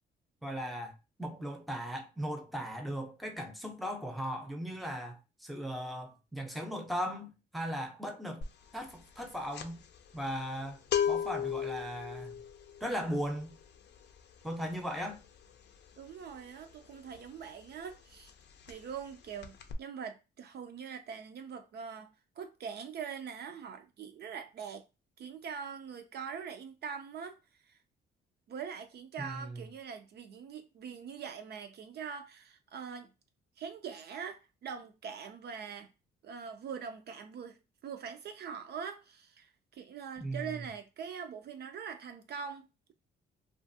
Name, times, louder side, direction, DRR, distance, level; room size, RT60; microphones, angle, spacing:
voice 1, 0.4-0.9 1.2-8.4 8.7-9.8 10.1-12.3 12.8-13.6 14.4-15.2 29.2-29.6 40.2-40.6, equal, ahead, 0.6 m, -38 dB
sound 1, 8.4-8.7 8.9-17.5 17.8-18.0 18.3-19.1 19.4-19.7, left 8 dB, 60° left, 0.5 m, -36 dB
voice 2, 16.0-18.3 18.7-22.1 22.4-24.8 25.2-27.8 28.5-33.1 33.6-35.9 36.2-42.9, right 7 dB, 55° right, 0.4 m, -43 dB
2.5 x 2.3 x 2.6 m
cardioid pair, 90°, 20 cm